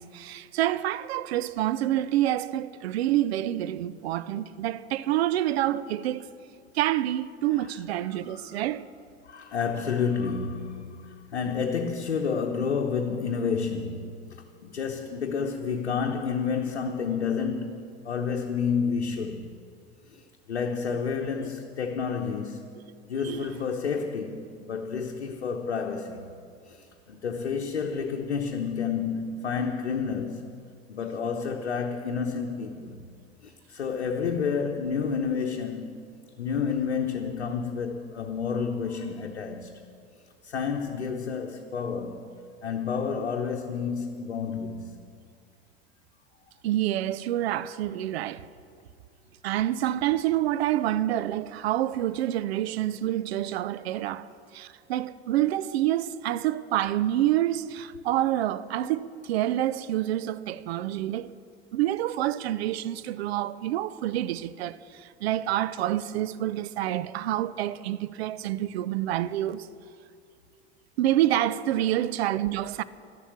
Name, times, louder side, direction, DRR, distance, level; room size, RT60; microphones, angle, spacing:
voice 1, 0.0-6.3 6.7-8.9 23.2-23.5 46.6-48.5 49.4-54.3 54.5-61.3 61.7-69.7 71.0-72.8, right 13 dB, 70° right, 0.6 m, -27 dB
voice 2, 8.1-8.6 9.2-19.4 20.1-22.6 23.1-26.3 26.6-30.5 30.9-33.0 33.4-36.0 36.4-39.7 40.4-42.2 42.6-45.0, left 6 dB, 85° left, 0.9 m, -30 dB
12.0 x 11.5 x 7.2 m
figure-of-eight pair, 70°, 32 cm